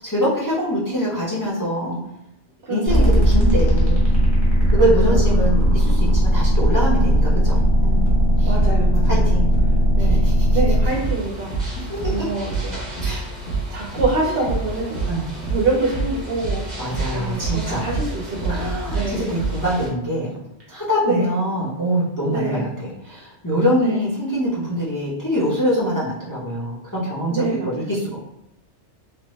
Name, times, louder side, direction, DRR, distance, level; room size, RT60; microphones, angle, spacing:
voice 1, 0.0-2.0 2.7-4.0 4.7-8.1 8.4-8.5 9.1-9.5 10.0-10.5 11.8-12.2 13.0-13.2 15.1-15.3 16.8-17.9 18.5-20.3 20.7-28.2, equal, 20° left, -7 dB, 0.7 m, -24 dB
voice 2, 2.7-3.2 4.7-5.5 8.4-9.3 10.0-11.6 12.0-12.8 13.7-15.0 15.5-16.7 17.1-19.3 21.0-21.3 22.3-22.6 23.8-24.0 27.3-27.9, right 3 dB, 60° right, -1 dB, 0.8 m, -26 dB
sound 1, 2.9-10.9, equal, 50° left, 1.0 m, -17 dB
sound 2, 3.1-6.3 6.6-19.6, right 4 dB, 70° left, 1.5 m, -26 dB
sound 3, 10.8-19.9, equal, 40° right, 1.0 m, -35 dB
3.3 x 2.0 x 3.1 m, 0.86 s
omnidirectional pair, 1.2 m